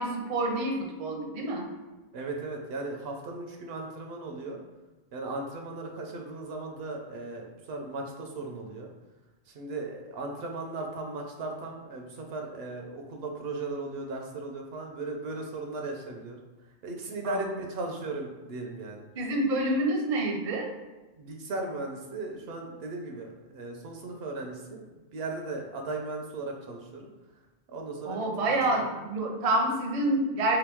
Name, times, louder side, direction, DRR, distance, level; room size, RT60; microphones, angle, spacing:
voice 1, 0.0-1.7 17.2-17.4 19.2-20.7 28.0-30.6, right 1 dB, 45° right, 1 dB, 0.6 m, -28 dB
voice 2, 2.1-4.6 5.1-8.9 9.5-16.4 16.8-19.1 21.2-27.1 27.7-28.8, right 2 dB, 75° right, 2 dB, 0.8 m, -37 dB
3.2 x 2.9 x 3.4 m, 1.2 s
omnidirectional pair, 1.1 m